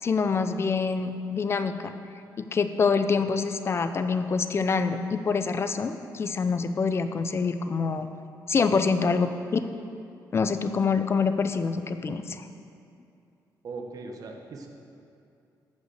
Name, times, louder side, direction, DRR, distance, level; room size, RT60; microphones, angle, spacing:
voice 1, 0.0-1.9 2.4-8.1 8.5-9.6 10.3-12.5, left 5 dB, 35° left, 9 dB, 0.6 m, -26 dB
voice 2, 13.6-14.7, right 3 dB, 55° right, 2 dB, 1.3 m, -39 dB
14.5 x 5.4 x 6.6 m, 2.6 s
cardioid pair, 135°, 7 cm